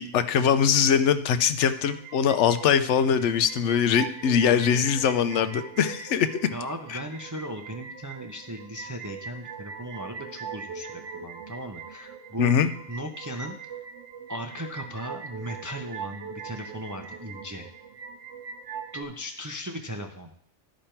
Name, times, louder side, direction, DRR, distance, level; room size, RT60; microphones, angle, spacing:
voice 1, 0.0-6.4 12.4-12.7, left 7 dB, 75° left, 11 dB, 0.9 m, -22 dB
sound 1, 1.4-19.0, right 6 dB, 70° right, 1.0 m, -41 dB
voice 2, 6.5-13.6 14.3-17.7 18.9-20.3, equal, 25° right, 4 dB, 0.4 m, -37 dB
11.5 x 5.0 x 4.4 m, 0.66 s
omnidirectional pair, 1.2 m